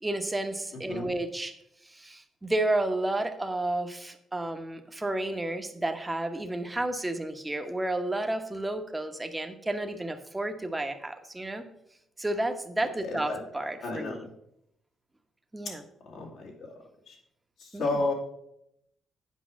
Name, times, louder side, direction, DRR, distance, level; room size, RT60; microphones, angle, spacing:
voice 1, 0.0-1.5 1.8-11.7 12.2-14.3 15.5-15.8 17.7-18.0, right 1 dB, 15° right, 6 dB, 1.0 m, -31 dB
voice 2, 13.0-13.4 13.8-14.1 16.0-16.7 17.1-17.2 17.6-18.1, left 2 dB, 75° left, -2 dB, 2.3 m, -32 dB
8.4 x 5.1 x 6.2 m, 0.78 s
cardioid pair, 90°, 0 cm